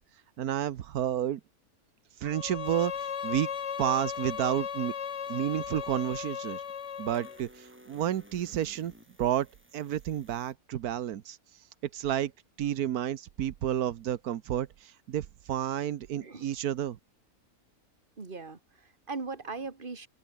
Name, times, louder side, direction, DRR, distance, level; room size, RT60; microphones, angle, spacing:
voice 1, 0.4-1.4 2.2-3.5 3.8-4.9 5.3-6.6 7.0-8.9 9.2-9.5 9.7-11.4 11.9-12.3 12.6-17.0, right 11 dB, 90° right, 1.4 m, -31 dB
Bowed string instrument, 2.2-7.4, left 7 dB, 55° left, 1.3 m, -36 dB
sound 1, 2.6-10.5, equal, 10° right, 3.8 m, -59 dB
voice 2, 16.2-16.5 18.2-20.1, right 4 dB, 35° right, 2.3 m, -39 dB
omnidirectional pair, 1.5 m